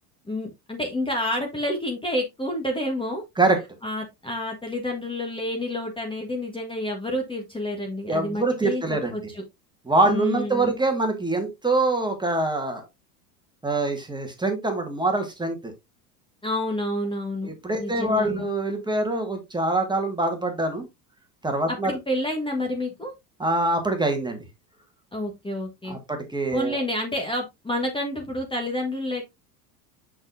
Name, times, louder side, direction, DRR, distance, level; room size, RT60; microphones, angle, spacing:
voice 1, 0.3-3.2 3.8-8.8 9.1-9.4 10.1-10.7 16.4-17.5 17.8-18.5 21.7-23.1 25.1-26.0 26.5-29.3, left 1 dB, 10° left, 2 dB, 1.5 m, -29 dB
voice 2, 8.1-9.1 9.9-12.9 13.6-15.7 17.4-20.9 21.4-21.9 23.4-24.4 25.9-26.8, right 2 dB, 10° right, 4 dB, 1.7 m, -24 dB
6.1 x 6.1 x 2.6 m, 0.21 s
hypercardioid pair, 85°, 48 cm